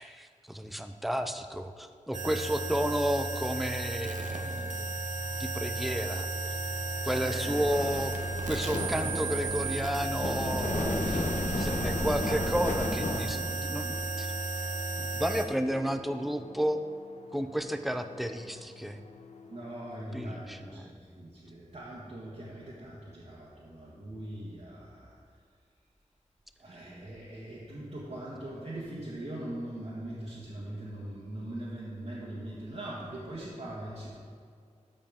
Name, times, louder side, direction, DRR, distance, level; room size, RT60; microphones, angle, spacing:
voice 1, 0.0-4.9 5.4-6.3 7.0-8.2 8.5-11.2 11.6-14.3 14.9-16.8 17.3-19.0 20.1-20.8, equal, ahead, 8 dB, 0.5 m, -32 dB
sound 1, 2.1-15.5, right 3 dB, 80° right, 0.7 m, -34 dB
sound 2, 4.8-20.4, left 4 dB, 65° left, 0.6 m, -50 dB
voice 2, 7.0-8.0 10.8-11.1 19.5-25.1 26.6-34.2, right 1 dB, 60° right, -8 dB, 1.6 m, -41 dB
sound 3, 7.5-14.0, left 1 dB, 80° left, 1.2 m, -34 dB
13.5 x 5.3 x 3.6 m, 2.2 s
wide cardioid pair, 70°, 13 cm